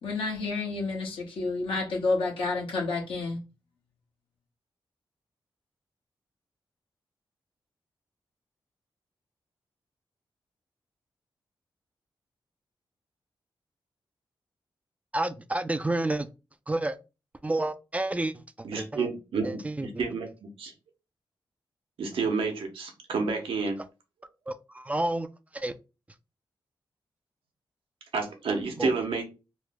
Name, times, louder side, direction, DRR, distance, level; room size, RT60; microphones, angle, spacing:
voice 1, 0.0-3.4, left 3 dB, 80° left, 1.2 m, -29 dB
voice 2, 15.1-16.3 16.7-17.0 17.4-19.1 19.4-20.1 24.5-25.3 25.5-25.7 28.8-28.9, right 2 dB, 15° right, 0.3 m, -30 dB
voice 3, 18.6-20.3 20.6-20.7 22.0-23.8 28.1-29.2, right 4 dB, 85° right, 0.8 m, -30 dB
3.1 x 2.0 x 3.4 m
cardioid pair, 80°, 9 cm